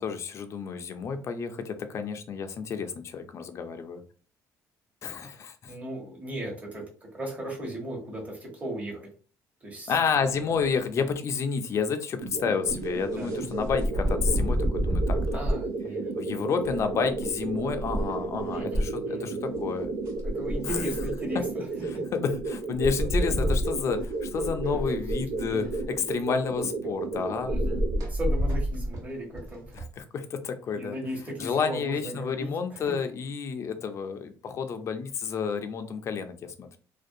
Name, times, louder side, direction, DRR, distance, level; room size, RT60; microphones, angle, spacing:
voice 1, 0.0-4.0 5.0-5.7 9.9-15.2 16.2-19.9 20.7-20.8 21.9-27.5 30.0-31.0 31.4-36.8, left 6 dB, 45° left, 8 dB, 0.4 m, -30 dB
voice 2, 5.7-6.8 7.1-9.1 9.6-10.5 13.1-13.3 15.3-16.8 18.5-19.3 20.2-21.7 21.9-22.0 24.6-24.7 25.5-25.9 27.5-27.8 28.1-29.8 30.7-32.9, right 1 dB, 20° right, -2 dB, 1.1 m, -37 dB
sound 1, 12.2-28.0, right 3 dB, 85° right, 0.5 m, -33 dB
sound 2, 12.7-15.6 16.6-18.8 19.5-19.6 19.8-21.3 22.4-22.5 22.8-26.0 27.5-29.9, equal, 60° right, 1.1 m, -29 dB
2.5 x 2.2 x 2.6 m, 0.39 s
cardioid pair, 115°, 7 cm